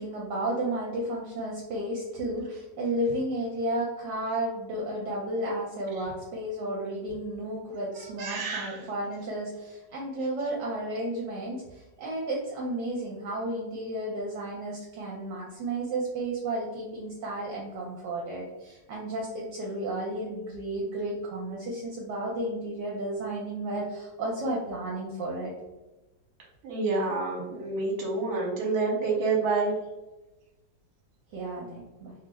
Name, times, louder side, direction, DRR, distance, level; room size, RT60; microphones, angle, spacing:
voice 1, 0.0-25.5 31.3-32.1, right 1 dB, 75° right, -3 dB, 1.2 m, -33 dB
voice 2, 8.2-8.8 26.6-29.8, right 3 dB, 55° right, -3 dB, 1.3 m, -28 dB
3.2 x 2.0 x 3.3 m, 1.0 s
omnidirectional pair, 2.0 m